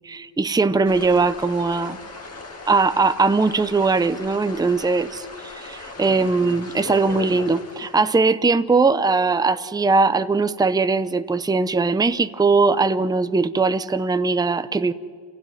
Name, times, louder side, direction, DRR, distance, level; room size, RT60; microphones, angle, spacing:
voice 1, 0.1-2.0 2.7-14.9, right 4 dB, 10° right, 0.5 m, -20 dB
sound 1, 0.8-8.2, left 3 dB, 30° left, 1.9 m, -38 dB
28.5 x 16.0 x 9.8 m
wide cardioid pair, 145°, 48 cm